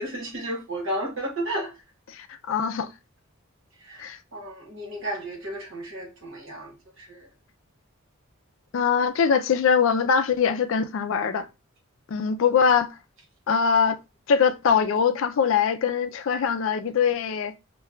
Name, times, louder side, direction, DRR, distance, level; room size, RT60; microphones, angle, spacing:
voice 1, 0.0-1.7 3.8-7.3, right 1 dB, 65° right, 1.0 m, -33 dB
voice 2, 2.1-2.9 4.0-4.2 8.7-11.5 12.1-12.9 13.5-14.0 14.3-17.5, left 6 dB, 65° left, 0.4 m, -22 dB
5.4 x 2.2 x 2.3 m
head